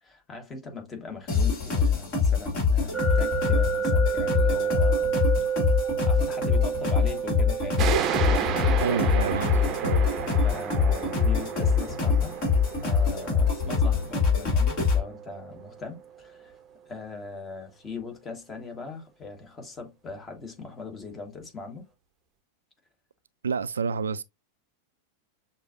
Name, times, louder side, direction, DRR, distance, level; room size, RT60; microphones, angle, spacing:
voice 1, 0.0-5.1 6.1-8.0 8.3-9.1 10.4-12.4 12.8-16.6 16.9-21.8, left 3 dB, 20° left, 1.4 m, -40 dB
sound 1, 1.3-15.0, left 5 dB, 40° left, 2.5 m, -24 dB
sound 2, 2.9-15.8, right 7 dB, 5° right, 1.2 m, -32 dB
sound 3, 7.8-15.0, right 9 dB, 30° right, 0.7 m, -32 dB
voice 2, 8.8-10.1 23.4-24.2, right 6 dB, 70° right, 0.3 m, -29 dB
6.3 x 2.6 x 2.5 m
figure-of-eight pair, 90°, 0 cm